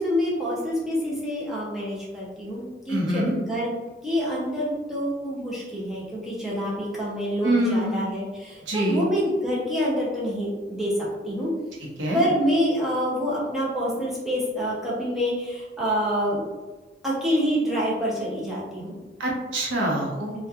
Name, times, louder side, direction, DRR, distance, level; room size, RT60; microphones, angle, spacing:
voice 1, 0.0-3.7 4.0-10.9 11.2-11.5 12.1-16.5 17.0-19.0, equal, ahead, -7 dB, 0.5 m, -27 dB
voice 2, 2.9-3.3 7.4-8.0 8.7-9.0 12.0-12.2 19.2-20.5, right 1 dB, 85° right, -2 dB, 0.7 m, -25 dB
2.8 x 2.2 x 2.3 m, 1.2 s
head